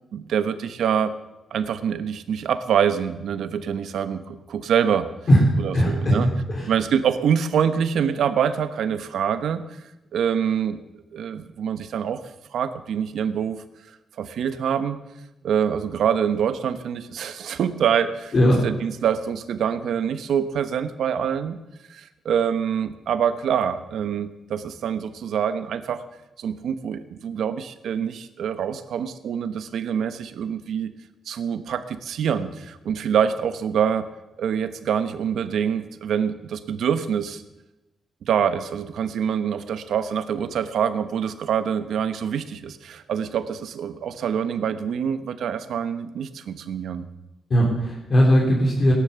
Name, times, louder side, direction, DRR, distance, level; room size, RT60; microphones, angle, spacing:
voice 1, 0.1-1.1 1.5-5.1 5.6-6.3 6.6-9.6 10.1-10.8 11.1-12.2 12.5-13.6 14.2-15.0 15.4-18.3 18.6-21.6 21.9-26.0 26.4-30.9 31.3-34.1 34.4-37.4 38.2-47.0, right 8 dB, 70° right, 10 dB, 1.1 m, -25 dB
voice 2, 5.7-6.7 18.3-18.6 47.5-48.9, equal, 35° left, -1 dB, 3.3 m, -18 dB
17.5 x 11.5 x 7.0 m, 0.97 s
wide cardioid pair, 150°, 0 cm